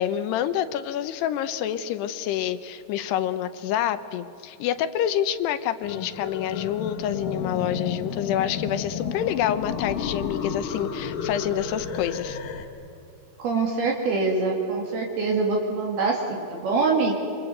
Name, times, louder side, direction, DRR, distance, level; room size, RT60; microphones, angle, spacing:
voice 1, 0.0-12.4, left 10 dB, 75° left, 12 dB, 2.9 m, -27 dB
sound 1, 5.8-12.7, left 6 dB, 60° left, 3.1 m, -32 dB
voice 2, 13.4-17.2, right 4 dB, 60° right, 0 dB, 4.2 m, -24 dB
28.0 x 26.0 x 8.0 m, 2.8 s
omnidirectional pair, 5.1 m